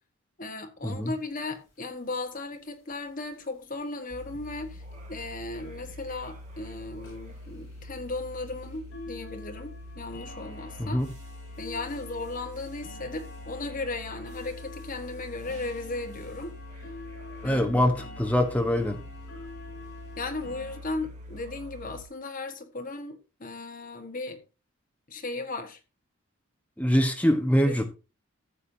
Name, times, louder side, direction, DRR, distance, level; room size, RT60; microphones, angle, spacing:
voice 1, 0.4-4.8 5.1-11.0 11.6-16.5 17.4-18.1 20.2-24.4 25.1-25.8 27.6-27.8, left 2 dB, 40° left, 1.5 m, -36 dB
sound 1, 1.1-1.2 1.4-1.5 1.7-1.9 2.2-2.6 3.3-3.4 3.9-4.0 4.4-4.5 4.9-5.0 5.5-5.6 6.0-6.2 6.6-6.7 7.0-20.8, left 3 dB, 55° left, 6.2 m, -47 dB
sound 2, 4.1-22.0, left 1 dB, 35° right, 2.4 m, -44 dB
voice 2, 17.4-19.0 26.8-27.8, equal, 5° left, 1.2 m, -24 dB
14.5 x 7.2 x 2.8 m
head